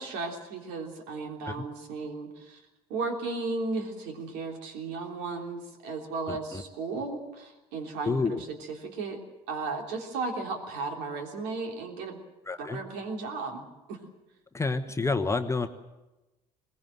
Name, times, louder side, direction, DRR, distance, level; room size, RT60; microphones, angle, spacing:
voice 1, 0.0-2.6 2.9-9.2 9.5-12.2 12.6-14.0, right 3 dB, 60° right, 3 dB, 3.4 m, -35 dB
voice 2, 6.3-6.6 8.0-8.4 12.5-12.8 14.5-15.7, left 3 dB, 15° left, 8 dB, 1.3 m, -29 dB
21.5 x 19.5 x 7.8 m, 1.0 s
figure-of-eight pair, 65°, 20 cm